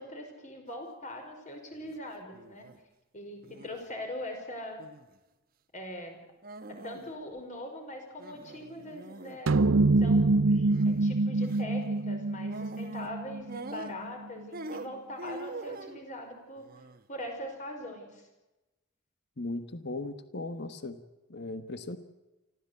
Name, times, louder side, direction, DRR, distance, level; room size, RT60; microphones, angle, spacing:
voice 1, 0.0-2.6 3.1-4.8 5.7-6.2 6.8-9.6 10.0-16.6 17.1-18.3, left 1 dB, 35° left, 3 dB, 5.4 m, -42 dB
sound 1, 1.7-2.0 2.3-2.8 3.4-3.9 4.8-5.2 6.4-7.1 7.4-7.5 8.2-9.4 10.7-11.0 11.4-11.6 12.5-13.1 13.5-14.2 14.5-16.0 16.6-17.0, right 2 dB, 45° right, 1.3 m, -44 dB
sound 2, 9.5-14.1, right 3 dB, 70° right, 0.7 m, -25 dB
voice 2, 19.4-21.0 21.3-22.0, left 2 dB, 55° left, 10 dB, 1.4 m, -37 dB
25.0 x 15.5 x 8.4 m, 1.0 s
head